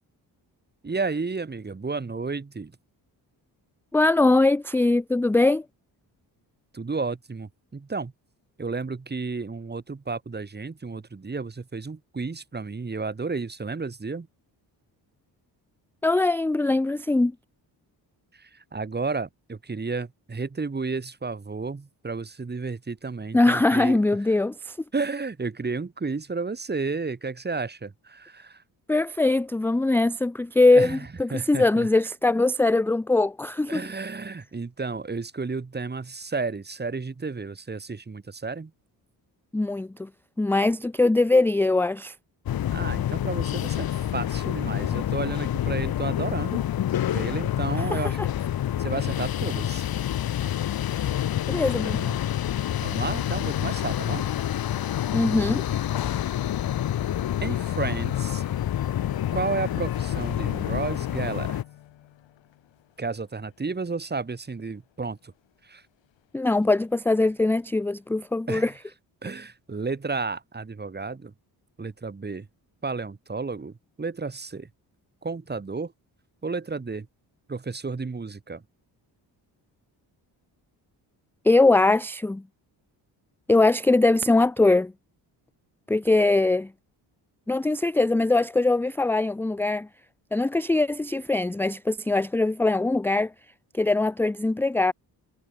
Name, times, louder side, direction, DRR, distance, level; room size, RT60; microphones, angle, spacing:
voice 1, 0.8-2.8 6.7-8.1 8.6-14.3 18.3-24.0 24.9-28.6 30.7-31.9 33.7-38.7 42.7-46.6 47.1-48.2 48.8-49.8 51.9-52.2 52.8-54.2 57.4-58.4 59.3-61.6 63.0-65.3 65.6-65.8 68.5-68.7 69.2-71.3 71.8-72.5 72.8-74.7 75.2-75.9 76.4-77.1 77.5-78.6, right 4 dB, 25° right, 1.6 m, -32 dB
voice 2, 3.9-5.6 16.0-17.3 23.3-24.8 28.9-33.8 39.5-40.1 40.4-42.1 47.8-48.3 51.5-52.0 55.1-55.6 66.3-68.7 81.4-82.4 83.5-84.9 85.9-86.7 87.5-89.9 90.3-93.3 93.7-94.9, left 2 dB, 5° left, 0.3 m, -22 dB
sound 1, 42.5-61.6, left 11 dB, 55° left, 0.9 m, -27 dB
sound 2, 53.1-68.4, left 12 dB, 85° left, 4.8 m, -48 dB
cardioid pair, 80°, 44 cm